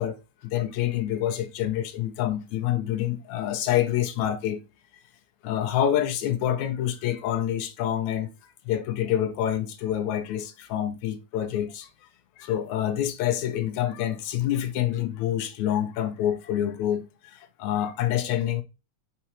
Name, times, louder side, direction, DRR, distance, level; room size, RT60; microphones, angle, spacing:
voice 1, 0.0-4.6 5.4-8.3 8.7-12.1 12.4-18.6, left 11 dB, 80° left, 1.9 m, -27 dB
5.6 x 3.3 x 2.9 m
omnidirectional pair, 3.4 m